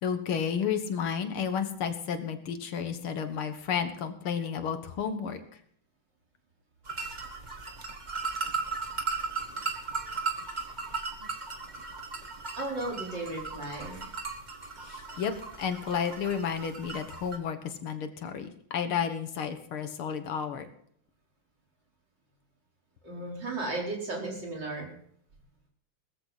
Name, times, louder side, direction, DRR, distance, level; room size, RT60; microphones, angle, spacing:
voice 1, 0.0-5.4 14.8-15.3 15.6-20.7, left 7 dB, 85° left, 8 dB, 2.2 m, -32 dB
sound 1, 6.8-17.4, right 4 dB, 25° right, 1.4 m, -37 dB
voice 2, 12.6-14.0 23.0-24.9, right 2 dB, 55° right, -2 dB, 5.0 m, -35 dB
19.0 x 14.5 x 4.1 m, 0.64 s
omnidirectional pair, 2.3 m